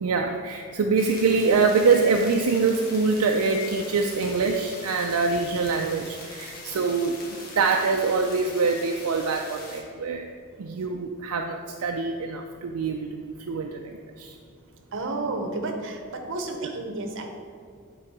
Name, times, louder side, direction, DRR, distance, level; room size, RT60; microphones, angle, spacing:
voice 1, 0.0-7.2 7.6-10.3 10.6-14.4, right 4 dB, 75° right, 3 dB, 0.4 m, -24 dB
sound 1, 1.0-9.8, left 2 dB, 45° left, 1.3 m, -42 dB
voice 2, 10.3-10.6 10.9-11.5 14.1-17.3, right 2 dB, 60° right, 4 dB, 0.9 m, -34 dB
8.6 x 3.9 x 4.7 m, 2.3 s
head